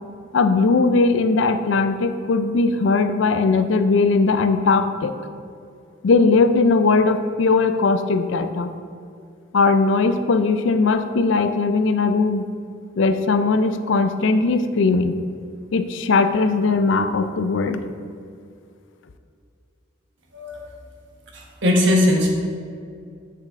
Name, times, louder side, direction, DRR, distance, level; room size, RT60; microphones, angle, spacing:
voice 1, 0.3-5.1 6.0-8.7 9.5-12.5 13.0-15.2 15.7-17.8, left 3 dB, 65° left, 10 dB, 0.4 m, -19 dB
voice 2, 21.3-22.3, left 1 dB, 60° right, 0 dB, 1.2 m, -19 dB
7.8 x 6.6 x 3.6 m, 2.4 s
head